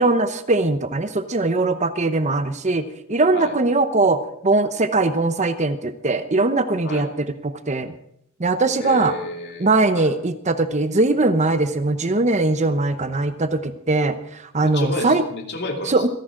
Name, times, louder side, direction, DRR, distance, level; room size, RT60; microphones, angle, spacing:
voice 1, 0.0-2.8 3.1-7.9 8.4-9.1 9.6-15.2 15.8-16.1, right 2 dB, 30° right, 10 dB, 0.9 m, -20 dB
voice 2, 8.8-10.1 14.6-16.1, left 2 dB, 50° left, 3 dB, 2.7 m, -30 dB
27.0 x 11.0 x 3.8 m, 0.71 s
head